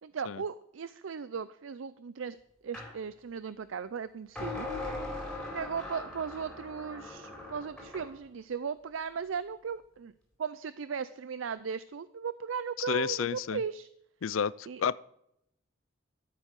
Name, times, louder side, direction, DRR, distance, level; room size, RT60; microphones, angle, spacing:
voice 1, 0.0-2.4 2.6-4.7 5.5-10.1 10.4-13.9 14.7-14.9, right 6 dB, 80° right, 15 dB, 0.5 m, -37 dB
sound 1, 2.7-2.9 4.4-8.1, left 2 dB, ahead, 4.6 m, -40 dB
voice 2, 12.9-13.6 14.2-14.9, left 7 dB, 90° left, 20 dB, 0.5 m, -31 dB
13.0 x 8.3 x 6.5 m, 0.77 s
head